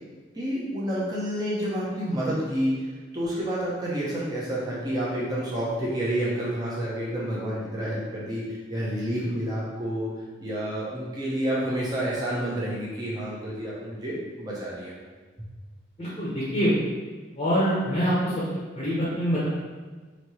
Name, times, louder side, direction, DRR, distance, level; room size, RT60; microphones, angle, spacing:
voice 1, 0.3-10.1 10.4-15.0, equal, 20° right, -7 dB, 0.9 m, -29 dB
voice 2, 16.0-16.7 17.4-18.2 18.7-19.5, equal, 30° left, -9 dB, 0.9 m, -24 dB
3.3 x 2.9 x 4.3 m, 1.3 s
head